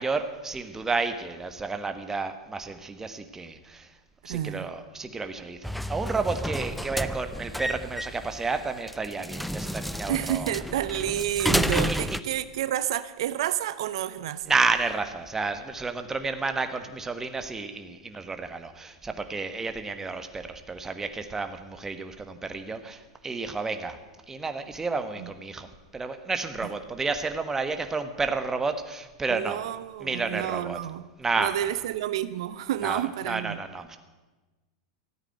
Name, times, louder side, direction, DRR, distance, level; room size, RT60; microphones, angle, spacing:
voice 1, 0.0-3.9 4.2-10.5 11.9-12.0 14.5-24.0 24.3-25.7 25.9-29.6 30.0-30.8 31.2-31.7 32.8-34.0, right 4 dB, 15° right, 8 dB, 1.4 m, -31 dB
voice 2, 4.3-4.7 10.1-14.5 25.2-25.3 29.3-31.0 31.4-33.6, right 12 dB, 70° right, 15 dB, 0.6 m, -30 dB
sound 1, 5.6-12.2, equal, ahead, 0.6 m, -31 dB
14.0 x 9.0 x 9.0 m, 1.2 s
hypercardioid pair, 100°, 3 cm